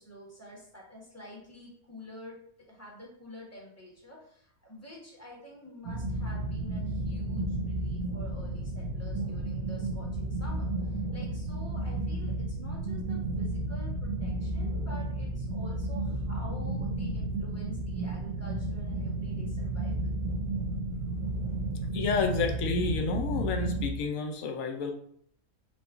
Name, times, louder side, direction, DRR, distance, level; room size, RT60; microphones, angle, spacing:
voice 1, 0.0-20.1, left 1 dB, 10° left, -4 dB, 1.3 m, -48 dB
sound 1, 5.8-23.9, right 2 dB, 65° right, 1.0 m, -32 dB
voice 2, 21.9-24.9, left 4 dB, 65° left, 4 dB, 1.1 m, -30 dB
5.9 x 2.4 x 3.7 m, 0.64 s
omnidirectional pair, 1.6 m